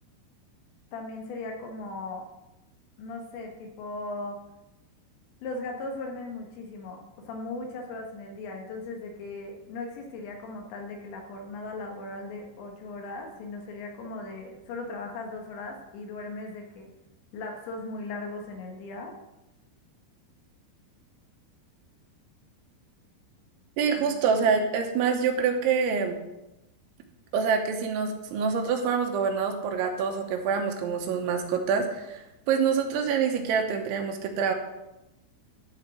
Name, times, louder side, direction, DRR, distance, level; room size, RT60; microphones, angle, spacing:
voice 1, 0.9-2.3 3.0-4.4 5.4-16.9 17.3-19.1 23.9-24.4, left 2 dB, 70° left, 2 dB, 3.4 m, -38 dB
voice 2, 23.8-26.2 27.3-34.5, right 6 dB, 80° right, 4 dB, 3.2 m, -26 dB
12.5 x 4.6 x 6.0 m, 0.95 s
omnidirectional pair, 5.6 m